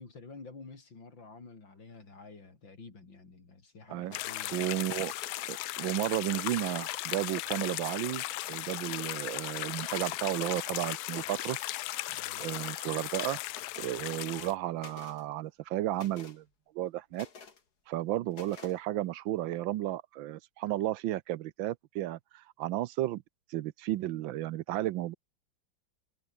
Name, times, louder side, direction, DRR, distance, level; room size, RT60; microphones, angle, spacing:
voice 1, 0.0-4.7 12.1-12.5, left 3 dB, 70° left, 4.9 m, -50 dB
sound 1, 4.1-14.5, left 17 dB, 85° left, 1.4 m, -37 dB
sound 2, 4.1-4.4 5.2-5.7 6.1-6.8 7.5-8.0 8.6-9.1 9.9-10.4 10.8-10.9 11.1-11.6 12.3-12.7 13.5-14.0 14.4-15.2 15.9-16.4 17.1-17.6 18.3-18.8, left 5 dB, 55° left, 2.8 m, -51 dB
voice 2, 4.5-5.1 5.5-12.1 12.4-13.4 13.8-16.4 16.7-17.3 17.9-23.2 23.5-25.1, right 14 dB, 80° right, 1.4 m, -33 dB
omnidirectional pair, 2.1 m